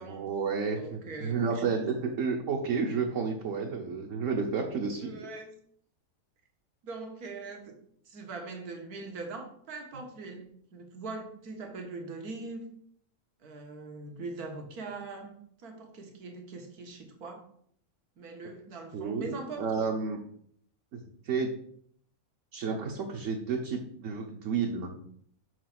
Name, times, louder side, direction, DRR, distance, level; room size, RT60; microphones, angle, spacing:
voice 1, 0.1-5.1 18.9-19.3 19.6-20.2 20.9-21.5 22.5-24.9, right 5 dB, 60° right, 0 dB, 1.2 m, -31 dB
voice 2, 0.8-1.6 2.0-2.1 5.0-5.5 6.8-7.7 8.1-12.7 13.4-15.3 15.6-17.4 18.2-19.9, right 3 dB, 80° right, 3 dB, 1.8 m, -41 dB
5.7 x 4.7 x 5.9 m, 0.65 s
omnidirectional pair, 1.6 m